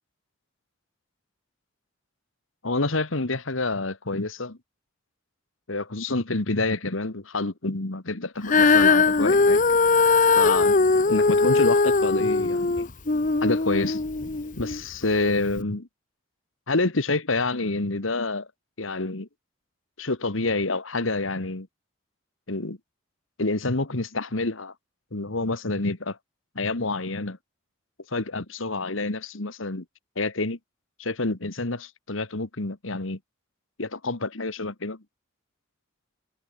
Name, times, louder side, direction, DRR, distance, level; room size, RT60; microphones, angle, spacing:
voice 1, 2.6-4.6 5.7-9.6 10.4-10.8 11.1-12.9 13.4-14.0 14.6-15.9 16.7-18.5 18.8-19.3 20.0-21.7 22.5-22.8 23.4-24.7 25.1-26.2 26.6-27.4 28.1-29.9 30.2-30.6 31.0-33.2 33.8-35.0, left 2 dB, 75° left, 1.8 m, -28 dB
Female singing, 8.5-14.8 15.5-15.6, left 4 dB, 40° left, 0.8 m, -20 dB
head